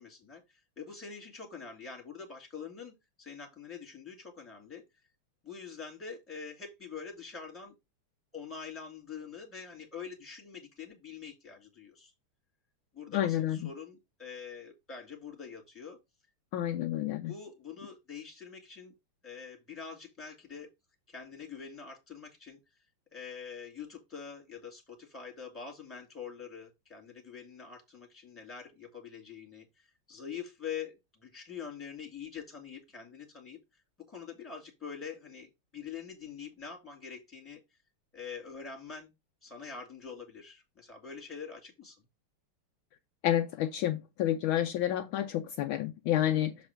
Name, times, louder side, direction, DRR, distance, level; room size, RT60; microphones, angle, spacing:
voice 1, 0.0-4.8 5.4-7.7 8.3-12.1 12.9-16.0 17.2-18.9 19.2-20.7 21.1-22.6 23.1-37.6 38.1-39.1 39.4-42.0, left 6 dB, 5° left, 2.2 m, -45 dB
voice 2, 13.1-13.6 16.5-17.3 43.2-46.6, left 12 dB, 75° left, 1.3 m, -29 dB
7.2 x 4.1 x 4.4 m
omnidirectional pair, 2.4 m